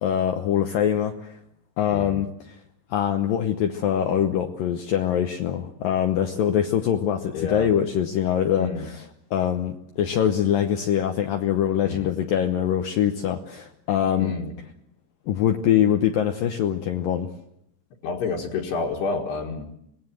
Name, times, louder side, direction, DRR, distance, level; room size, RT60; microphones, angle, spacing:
voice 1, 0.0-1.4 1.8-2.3 2.9-9.1 9.3-14.3 15.3-17.3, left 9 dB, 85° left, 5 dB, 2.0 m, -23 dB
voice 2, 1.9-2.3 7.3-7.7 8.6-8.9 11.8-12.2 14.2-14.5 18.0-19.7, left 4 dB, 65° left, 0 dB, 3.5 m, -29 dB
25.0 x 19.0 x 7.7 m, 0.75 s
omnidirectional pair, 5.6 m